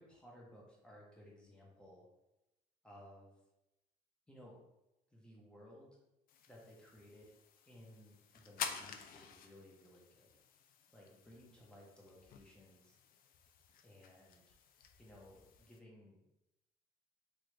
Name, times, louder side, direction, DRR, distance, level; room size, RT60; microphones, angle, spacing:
voice 1, 0.0-2.1 2.8-3.4 4.3-4.6 5.1-6.0 6.5-7.3 7.6-10.3 10.9-13.0 13.8-14.6 15.0-16.2, left 1 dB, 5° left, -4 dB, 0.9 m, -59 dB
sound 1, 6.3-15.8, left 7 dB, 60° left, 0.4 m, -50 dB
3.1 x 2.5 x 3.1 m, 0.93 s
cardioid pair, 110°, 17 cm